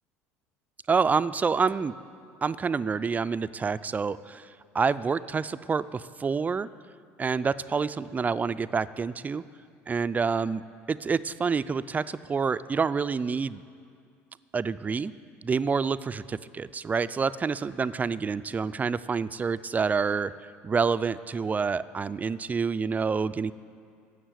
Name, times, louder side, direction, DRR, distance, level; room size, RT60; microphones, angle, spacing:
voice 1, 0.9-1.9 2.4-4.5 4.7-6.7 7.2-9.4 9.9-10.6 10.9-13.6 14.5-15.1 15.4-20.3 20.6-23.5, right 5 dB, 20° right, 14 dB, 0.3 m, -27 dB
11.5 x 7.3 x 8.2 m, 2.3 s
figure-of-eight pair, 65°, 7 cm